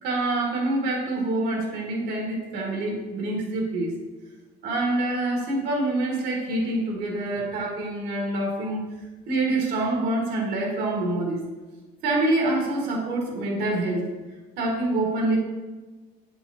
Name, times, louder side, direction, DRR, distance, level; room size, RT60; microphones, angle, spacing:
voice 1, 0.0-3.9 4.6-8.8 9.3-11.4 12.0-14.1 14.6-15.4, right 2 dB, 80° right, 0 dB, 1.6 m, -26 dB
7.8 x 5.5 x 2.9 m, 1.3 s
cardioid pair, 150°, 17 cm